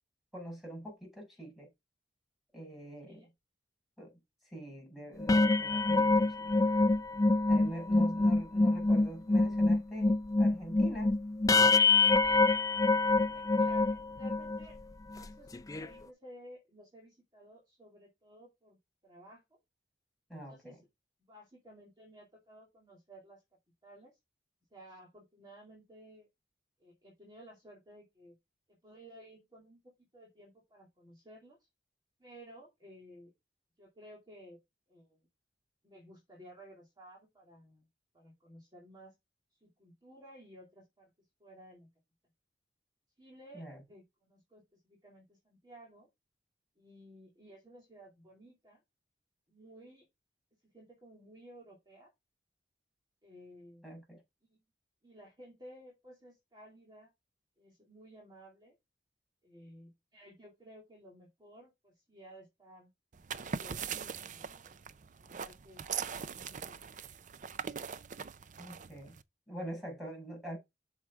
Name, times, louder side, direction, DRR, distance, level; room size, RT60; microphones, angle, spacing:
voice 1, 0.3-1.7 2.5-3.2 4.0-4.2 4.4-6.5 7.5-11.2 20.3-20.7 43.5-43.8 53.8-54.2 68.6-69.1 69.5-70.6, right 1 dB, ahead, 5.9 m, -44 dB
sound 1, 5.2-14.7 15.1-15.3 15.5-15.9, left 3 dB, 20° left, 0.4 m, -26 dB
voice 2, 13.3-14.8 15.1-15.5 15.8-18.8 19.0-19.6 20.3-20.8 21.2-23.4 23.8-24.2 24.7-26.3 26.8-28.3 28.7-29.8 30.1-31.7 32.2-33.3 33.8-34.6 34.9-35.2 35.8-37.9 38.1-39.1 39.6-41.1 41.4-41.9 43.2-46.1 46.8-48.8 49.5-50.0 50.7-52.1 53.2-53.9 54.5-54.6 55.0-57.1 57.6-58.7 59.4-62.9 63.4-64.8 65.2-65.8 66.2-66.8, equal, 25° right, 2.6 m, -55 dB
sound 2, 63.1-69.2, right 6 dB, 45° right, 0.5 m, -41 dB
7.8 x 6.4 x 3.6 m
head